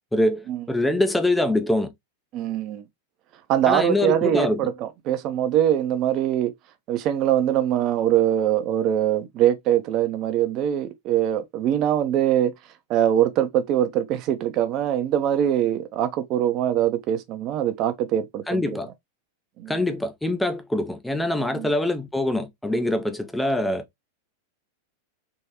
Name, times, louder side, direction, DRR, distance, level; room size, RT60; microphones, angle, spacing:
voice 1, 0.1-1.9 3.7-4.7 18.5-18.9 19.7-23.8, left 1 dB, 5° left, 0.5 m, -24 dB
voice 2, 2.3-2.9 3.5-6.5 6.9-12.5 12.9-18.8 19.6-19.9 21.5-21.7, right 11 dB, 40° right, 0.6 m, -23 dB
3.5 x 3.0 x 2.9 m
figure-of-eight pair, 90°, 0 cm